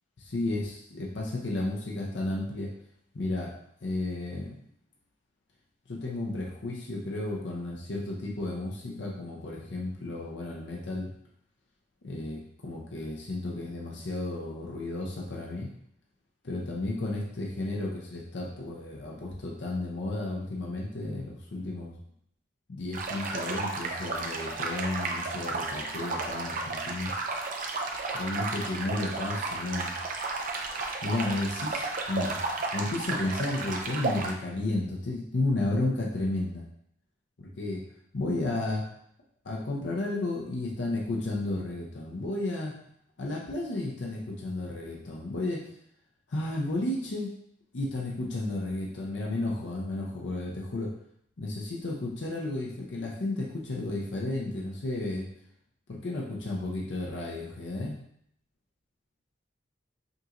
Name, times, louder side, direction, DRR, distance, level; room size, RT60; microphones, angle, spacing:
voice 1, 0.2-2.7 3.1-3.5 3.8-4.6 5.9-11.1 12.0-15.7 16.4-22.0 22.7-27.1 28.2-29.9 31.0-32.4 32.7-36.7 37.4-37.8 38.1-38.9 39.4-42.7 43.2-45.6 46.3-47.3 47.7-50.9 51.4-55.3 55.9-58.0, left 2 dB, 75° left, -2 dB, 0.7 m, -33 dB
sound 1, 22.9-34.3, right 3 dB, 50° right, 0.5 m, -33 dB
5.2 x 2.6 x 2.9 m, 0.69 s
head